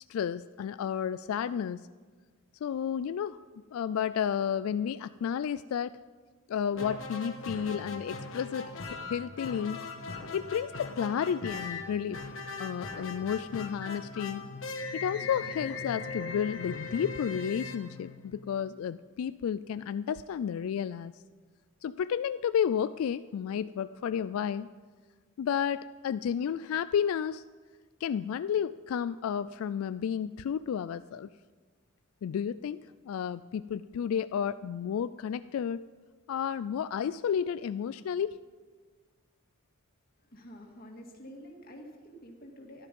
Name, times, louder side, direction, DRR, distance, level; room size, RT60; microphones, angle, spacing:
voice 1, 0.1-1.9 2.6-3.4 3.7-6.0 6.5-9.8 10.3-12.3 12.6-14.5 14.9-21.2 21.8-24.7 25.4-27.4 28.0-31.3 32.2-32.8 33.0-35.8 36.3-38.4, left 8 dB, 85° left, 14 dB, 0.3 m, -32 dB
sound 1, 6.7-18.6, left 3 dB, 70° left, 1.3 m, -40 dB
voice 2, 40.2-42.9, equal, 45° left, 1 dB, 2.1 m, -48 dB
14.0 x 12.0 x 5.3 m, 1.4 s
head